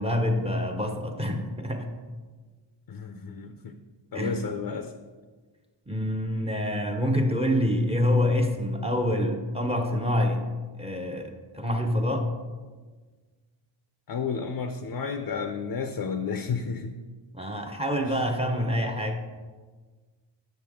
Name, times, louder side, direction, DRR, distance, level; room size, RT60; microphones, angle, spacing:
voice 1, 0.0-1.9 4.1-4.4 5.9-10.5 10.8-12.3 17.3-19.3, left 1 dB, 15° right, 4 dB, 0.7 m, -26 dB
voice 2, 2.9-3.8 4.1-4.9 14.1-16.9 18.1-18.2, left 5 dB, 55° left, 7 dB, 0.5 m, -32 dB
7.7 x 6.3 x 3.5 m, 1.4 s
wide cardioid pair, 95°, 47 cm